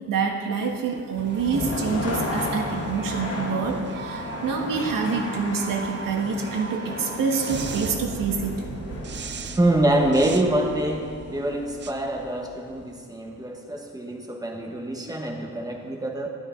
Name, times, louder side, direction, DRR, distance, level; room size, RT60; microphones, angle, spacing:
voice 1, 0.1-8.6, right 5 dB, 80° right, 3 dB, 1.6 m, -27 dB
sound 1, 0.5-12.9, right 6 dB, 35° right, 0.6 m, -38 dB
sound 2, 1.1-13.0, left 2 dB, 45° left, 1.9 m, -34 dB
voice 2, 9.6-16.3, right 1 dB, 10° right, 2 dB, 1.2 m, -25 dB
13.5 x 11.5 x 3.8 m, 2.1 s
wide cardioid pair, 155°, 33 cm